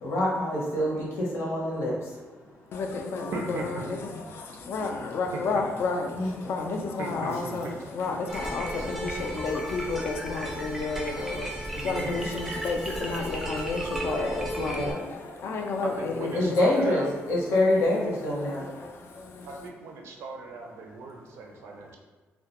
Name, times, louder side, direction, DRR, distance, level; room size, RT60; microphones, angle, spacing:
voice 1, 0.0-1.9 6.1-6.3 11.9-12.3 14.6-15.0 16.3-18.6, left 1 dB, 85° left, -4 dB, 0.7 m, -26 dB
voice 2, 2.7-16.6 17.2-18.0 18.4-19.7, left 4 dB, 60° left, 3 dB, 0.3 m, -32 dB
voice 3, 3.3-3.8 5.3-5.4 7.0-7.7 16.0-17.1 19.4-22.0, right 3 dB, 75° right, 1 dB, 0.4 m, -37 dB
sound 1, 8.3-14.9, right 1 dB, 10° right, 0.4 m, -34 dB
2.2 x 2.1 x 2.9 m, 1.3 s
cardioid pair, 145°, 4 cm